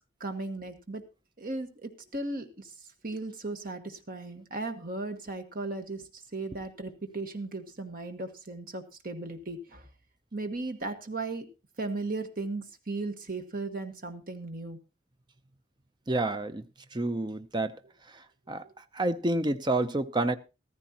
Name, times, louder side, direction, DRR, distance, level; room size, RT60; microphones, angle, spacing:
voice 1, 0.2-1.0 1.4-2.7 3.0-6.0 6.3-9.8 10.3-11.5 11.8-14.8, right 2 dB, 45° right, 1.4 m, -36 dB
voice 2, 16.1-16.6 16.9-17.8 18.1-18.6 18.9-20.4, right 2 dB, 25° right, 0.6 m, -29 dB
14.0 x 14.0 x 2.9 m
head